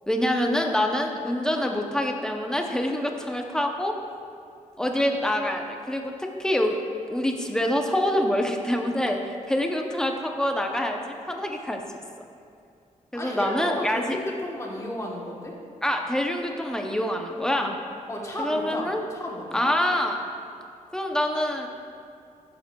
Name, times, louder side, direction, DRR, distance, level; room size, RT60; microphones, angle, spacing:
voice 1, 0.1-3.9 4.8-6.8 7.1-11.8 13.1-14.2 15.8-17.8 18.4-19.0 19.5-20.2 20.9-21.7, left 1 dB, 5° left, 2 dB, 0.5 m, -26 dB
voice 2, 13.1-15.6 18.1-19.6, left 1 dB, 20° left, -2 dB, 1.1 m, -33 dB
11.0 x 7.6 x 2.2 m, 2.5 s
wide cardioid pair, 165°, 14 cm